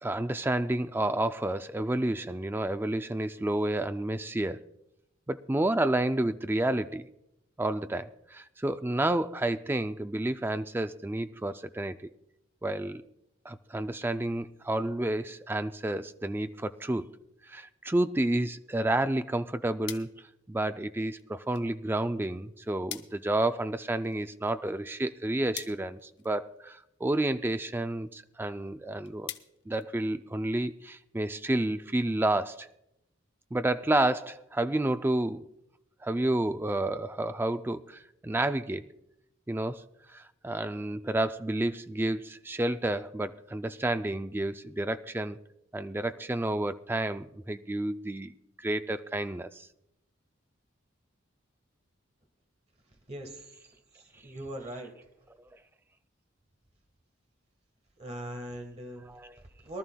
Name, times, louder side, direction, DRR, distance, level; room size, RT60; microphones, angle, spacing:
voice 1, 0.0-4.6 5.3-7.1 7.6-12.1 12.6-13.0 13.5-17.1 17.5-20.1 20.5-29.3 29.7-32.7 33.5-35.5 36.0-38.9 39.5-39.8 40.1-45.4 45.7-49.7 59.1-59.3, right 1 dB, 10° right, 11 dB, 0.3 m, -30 dB
sound 1, 19.9-30.6, left 11 dB, 60° left, 0.8 m, -49 dB
voice 2, 53.1-54.9 58.0-59.1 59.4-59.8, right 1 dB, 30° right, 3 dB, 1.3 m, -41 dB
23.0 x 12.5 x 2.2 m, 0.84 s
head